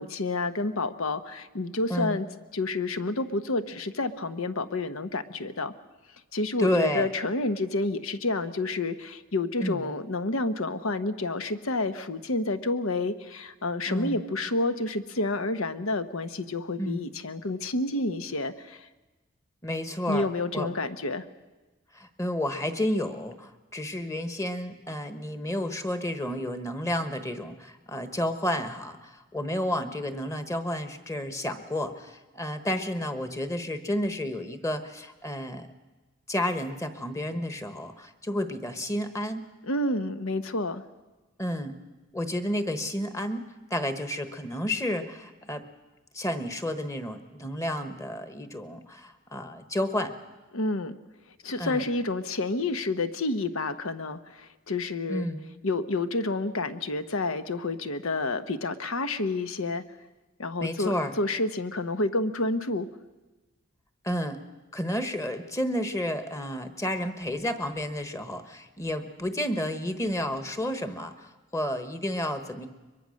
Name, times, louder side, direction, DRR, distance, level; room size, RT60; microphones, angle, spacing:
voice 1, 0.0-2.3 2.5-5.7 6.3-18.9 20.1-21.2 39.6-40.8 50.5-51.0 51.4-55.3 55.6-59.8 60.4-62.9, left 2 dB, 80° left, 11 dB, 1.1 m, -29 dB
voice 2, 6.6-7.1 9.6-9.9 13.9-14.2 16.8-17.1 19.6-20.3 20.5-20.7 21.9-35.7 36.3-39.4 41.4-41.8 42.1-43.4 43.7-45.6 46.1-50.1 51.6-51.8 55.1-55.4 60.6-61.1 64.0-64.4 64.7-72.7, left 1 dB, 15° left, 9 dB, 1.2 m, -31 dB
23.0 x 22.5 x 6.5 m, 1.2 s
head